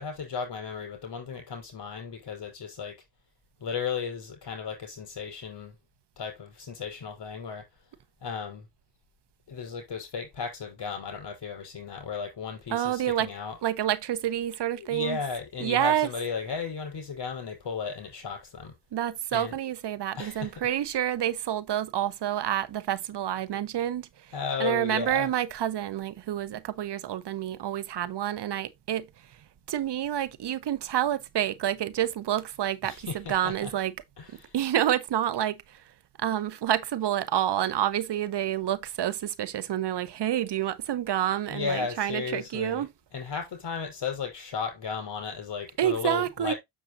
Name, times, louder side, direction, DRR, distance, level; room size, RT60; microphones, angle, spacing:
voice 1, 0.0-3.0 3.6-5.8 6.2-7.7 8.2-8.7 9.5-13.6 14.8-18.7 19.3-19.6 20.2-20.5 24.3-25.3 32.8-33.7 34.2-34.6 41.5-42.9 43.1-46.6, left 6 dB, 55° left, 5.0 m, -35 dB
voice 2, 12.7-13.3 13.6-15.2 15.6-16.1 18.9-24.3 24.6-33.9 34.5-42.9 45.8-46.5, right 11 dB, 60° right, 0.9 m, -28 dB
7.2 x 6.7 x 2.6 m
cardioid pair, 80°, 47 cm